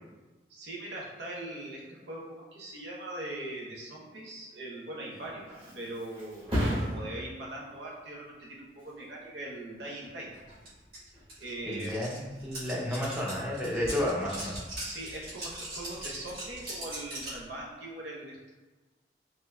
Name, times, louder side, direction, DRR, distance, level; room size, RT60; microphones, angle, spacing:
voice 1, 0.5-5.5 5.7-10.3 11.4-12.1 13.7-14.0 14.8-18.5, right 1 dB, 90° right, -4 dB, 0.8 m, -41 dB
Thump thud, 5.1-12.4 12.8-13.2, equal, 30° right, 1.1 m, -38 dB
sound 1, 10.6-10.7 10.9-17.4, right 1 dB, 60° right, 1.4 m, -40 dB
voice 2, 11.7-14.6, left 1 dB, 5° right, -5 dB, 0.6 m, -32 dB
4.2 x 2.6 x 2.2 m, 1.2 s
head